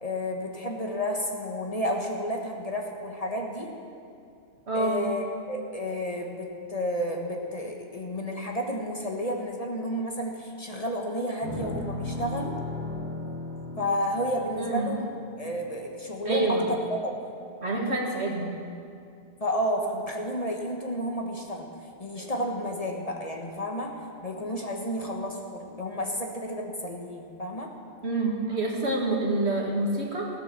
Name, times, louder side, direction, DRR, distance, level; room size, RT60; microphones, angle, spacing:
voice 1, 0.0-3.7 4.7-12.6 13.8-15.1 15.4-16.8 17.0-17.1 19.4-21.7 22.0-23.9 24.2-27.7, equal, 35° left, 1 dB, 1.3 m, -31 dB
voice 2, 4.7-5.0 14.6-14.9 16.3-16.7 17.6-18.5 22.1-22.3 28.0-30.3, right 2 dB, 65° right, -1 dB, 2.2 m, -27 dB
sound 1, 11.4-15.8, left 2 dB, 15° right, 2.7 m, -36 dB
16.5 x 9.2 x 6.9 m, 2.4 s
omnidirectional pair, 1.2 m